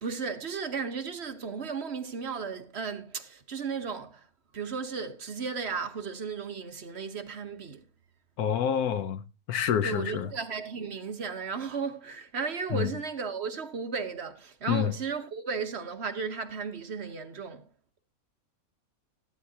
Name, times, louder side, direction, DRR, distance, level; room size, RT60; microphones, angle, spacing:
voice 1, 0.0-4.3 4.5-7.8 9.8-17.7, right 5 dB, 50° right, 1.1 m, -35 dB
voice 2, 8.4-10.3 12.7-12.9 14.7-14.9, left 9 dB, 80° left, 1.2 m, -28 dB
14.5 x 9.4 x 2.8 m
omnidirectional pair, 1.6 m